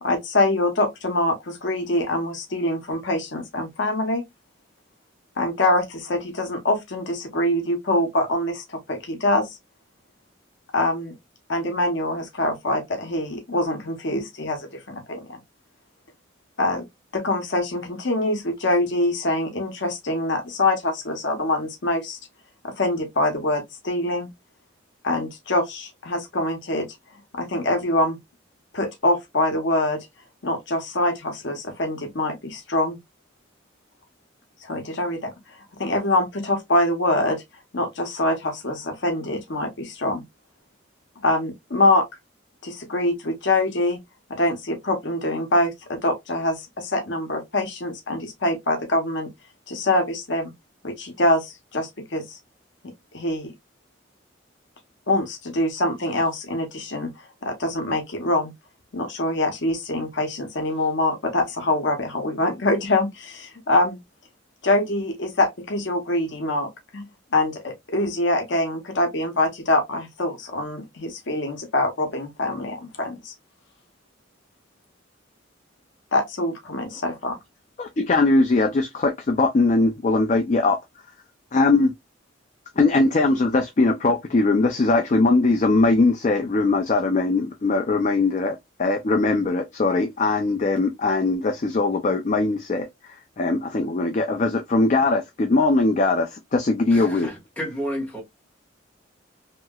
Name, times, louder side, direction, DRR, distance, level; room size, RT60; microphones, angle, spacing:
voice 1, 0.0-4.2 5.4-9.5 10.7-11.2 11.5-15.4 16.6-16.8 17.1-22.2 22.6-24.3 25.0-26.9 27.3-28.2 28.7-30.1 30.4-33.0 34.6-35.3 35.8-37.4 37.7-40.2 41.2-42.1 42.6-44.0 44.3-49.3 49.7-50.5 50.8-52.4 52.8-53.5 55.1-57.1 57.4-58.5 58.9-64.0 64.6-67.1 67.3-73.3 76.1-77.4, left 1 dB, 65° left, 0.8 m, -24 dB
voice 2, 77.8-80.8 81.5-81.9 82.8-97.3, left 3 dB, 40° left, 0.4 m, -21 dB
voice 3, 96.9-98.2, equal, 10° left, 1.3 m, -31 dB
2.9 x 2.8 x 2.2 m
head